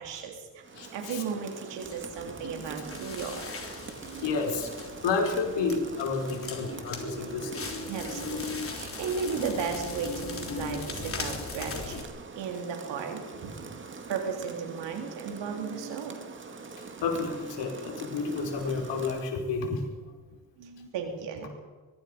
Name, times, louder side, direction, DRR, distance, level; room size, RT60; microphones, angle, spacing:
voice 1, 0.0-0.6 0.9-3.6 4.0-4.3 6.3-6.9 7.1-12.1 12.3-16.3 17.8-17.9 19.2-19.3 20.6-21.5, right 6 dB, 85° right, 2 dB, 3.4 m, -36 dB
Rain, 0.6-19.3, right 4 dB, 30° right, 2.2 m, -44 dB
voice 2, 0.8-1.2 4.2-4.7 5.0-7.7 17.0-19.9, left 4 dB, 80° left, 2 dB, 4.8 m, -30 dB
Crackle, 1.8-12.0, left 4 dB, 30° left, 3.6 m, -39 dB
23.5 x 23.5 x 5.2 m, 1.4 s
cardioid pair, 160°, 42 cm